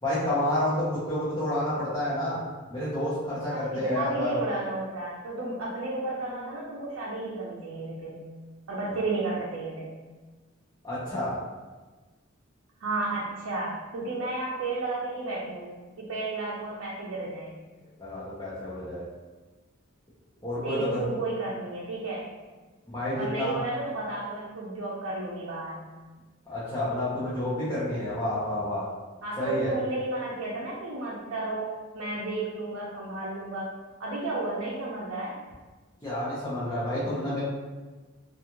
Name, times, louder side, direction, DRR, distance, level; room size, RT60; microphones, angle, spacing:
voice 1, 0.0-2.4 2.7-4.3 10.8-11.3 18.0-19.0 20.4-21.0 22.9-23.6 26.5-28.8 29.4-29.7 36.0-37.4, left 1 dB, 20° left, -12 dB, 0.7 m, -29 dB
voice 2, 3.5-8.2 8.7-9.9 12.8-15.7 16.0-17.6 20.6-22.3 23.2-25.8 29.2-33.7 34.0-35.4, right 2 dB, 80° right, -5 dB, 0.5 m, -32 dB
2.4 x 2.3 x 2.9 m, 1.3 s
head